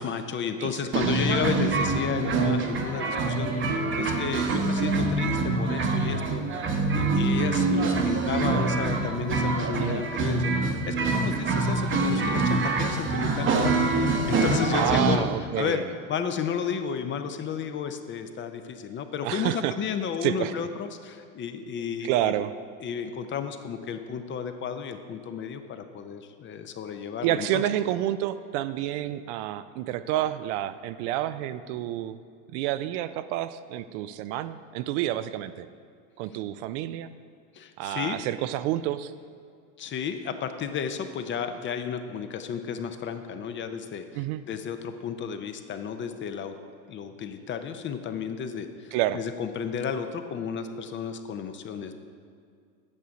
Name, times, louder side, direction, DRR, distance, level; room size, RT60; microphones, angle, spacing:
voice 1, 0.0-6.6 7.0-15.3 15.6-15.8 16.1-22.3 22.8-27.6 37.5-38.2 39.8-46.5 46.9-52.0, left 7 dB, 30° left, 8 dB, 0.6 m, -33 dB
sound 1, 0.9-15.2, right 3 dB, 30° right, 0.9 m, -25 dB
voice 2, 14.7-15.9 19.2-19.7 20.2-20.5 21.8-22.5 27.2-32.2 32.5-35.7 36.2-37.1 37.8-39.1 44.1-44.4 48.9-49.2, right 13 dB, 60° right, 13 dB, 0.5 m, -29 dB
8.6 x 6.2 x 5.1 m, 2.3 s
supercardioid pair, 105°, 41 cm